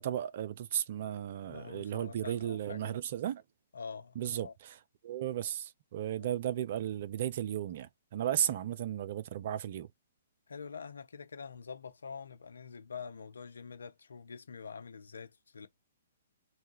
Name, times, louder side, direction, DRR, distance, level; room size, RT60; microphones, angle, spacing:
voice 1, 0.0-3.4 4.2-4.8 5.0-9.9, right 11 dB, 50° right, 0.4 m, -35 dB
voice 2, 1.4-2.9 3.7-4.5 6.2-6.3 8.4-8.6 10.5-15.7, left 5 dB, 75° left, 0.5 m, -46 dB
2.9 x 2.2 x 2.9 m
figure-of-eight pair, 125°, 0 cm